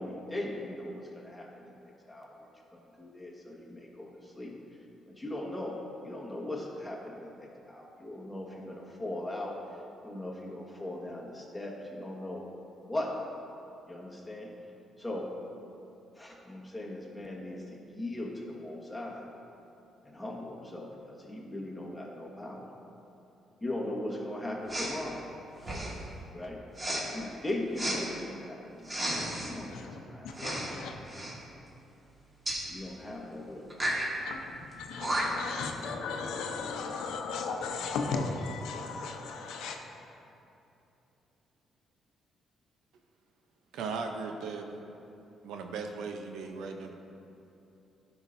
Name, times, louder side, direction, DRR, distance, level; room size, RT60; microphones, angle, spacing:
voice 1, 0.0-2.4 2.7-4.6 5.2-9.6 10.0-12.5 12.9-13.2 13.9-14.5 15.0-15.3 16.1-19.3 20.0-22.7 23.6-25.3 26.3-26.6 27.1-30.3 30.6-30.8 32.7-34.0, left 1 dB, 5° left, -3 dB, 1.5 m, -39 dB
Respiratory sounds, 24.7-25.0 25.6-26.0 26.8-27.0 27.8-28.0 28.8-29.5 30.3-30.7 31.0-31.3 32.5-32.6 33.7-34.1 34.7-34.8 35.0-35.5, right 1 dB, 30° right, 1.7 m, -33 dB
voice 2, 30.4-30.9 34.3-34.4 34.8-39.8, left 4 dB, 85° left, 3 dB, 0.7 m, -35 dB
voice 3, 43.7-44.7 45.4-46.9, right 4 dB, 85° right, 4 dB, 0.6 m, -37 dB
12.5 x 5.8 x 2.6 m, 2.8 s
cardioid pair, 90°, 0 cm